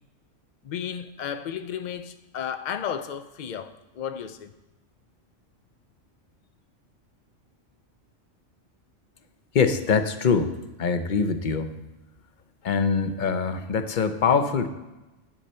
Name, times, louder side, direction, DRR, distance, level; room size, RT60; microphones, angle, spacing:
voice 1, 0.6-4.5, left 8 dB, 80° left, 0.4 m, -33 dB
voice 2, 9.5-10.5 10.8-11.8 12.6-14.7, left 5 dB, 45° left, 0.7 m, -23 dB
10.0 x 7.6 x 4.3 m
omnidirectional pair, 1.3 m